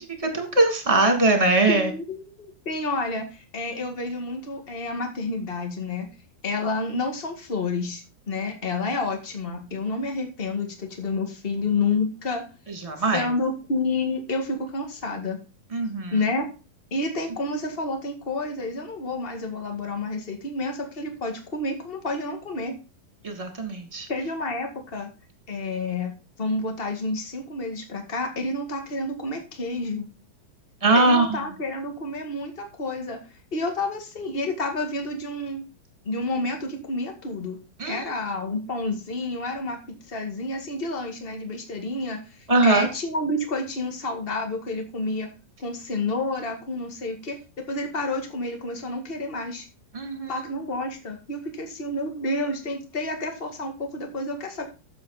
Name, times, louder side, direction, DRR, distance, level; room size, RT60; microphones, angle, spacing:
voice 1, 0.0-1.9 12.8-13.3 15.7-16.1 23.2-24.1 30.8-31.4 37.8-38.0 42.5-42.9 49.9-50.4, right 2 dB, 10° right, 3 dB, 1.8 m, -21 dB
voice 2, 1.7-6.1 6.4-12.4 13.1-15.4 16.1-16.5 16.9-22.7 24.1-25.1 25.5-30.0 30.9-33.2 33.5-35.6 36.0-37.6 37.8-39.8 40.0-45.3 45.6-47.4 47.7-49.7 50.3-54.6, left 2 dB, 35° left, 3 dB, 0.8 m, -29 dB
12.0 x 7.6 x 4.2 m, 0.31 s
omnidirectional pair, 4.6 m